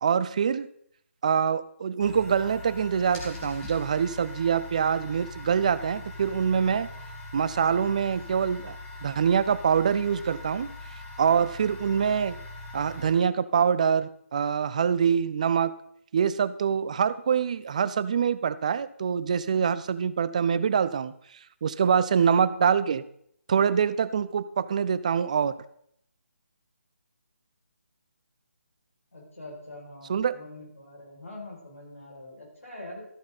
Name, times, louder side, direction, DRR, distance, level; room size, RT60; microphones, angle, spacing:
voice 1, 0.0-0.7 1.2-6.9 7.3-8.8 9.0-10.7 11.2-12.4 12.7-15.7 16.1-21.1 21.6-23.0 23.5-25.6 30.1-30.4, right 7 dB, 30° right, 16 dB, 0.4 m, -25 dB
sound 1, 2.0-13.1, left 2 dB, 10° left, 1.8 m, -41 dB
voice 2, 21.9-22.3 29.1-33.0, left 1 dB, 70° left, -3 dB, 6.1 m, -44 dB
13.0 x 9.3 x 4.1 m, 0.69 s
figure-of-eight pair, 145°, 8 cm